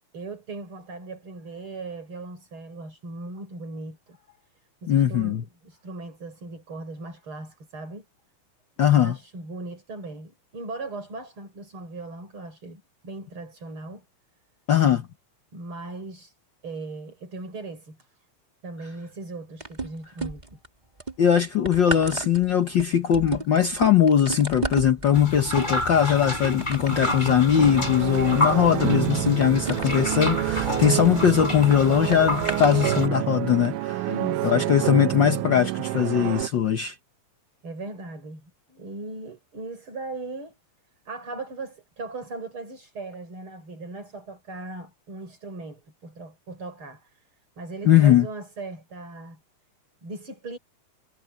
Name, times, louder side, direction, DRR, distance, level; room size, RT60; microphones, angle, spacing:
voice 1, 0.0-4.4 4.8-8.1 8.8-14.0 15.5-16.3 16.6-18.1 18.6-20.6 34.1-34.7 37.6-40.6 41.1-47.3 47.6-49.4 50.0-50.6, right 3 dB, 40° right, 7.0 m, -38 dB
voice 2, 4.9-5.4 8.8-9.2 14.7-15.1 21.2-34.1 34.4-36.9 47.8-48.3, left 9 dB, 75° left, 1.0 m, -20 dB
sound 1, 19.6-20.7 21.0-31.4 32.1-32.8 33.5-33.7, right 3 dB, 15° right, 2.9 m, -34 dB
sound 2, 25.1-33.1, left 1 dB, 15° left, 6.6 m, -30 dB
sound 3, 27.6-36.5, right 15 dB, 90° right, 2.3 m, -28 dB
omnidirectional pair, 3.5 m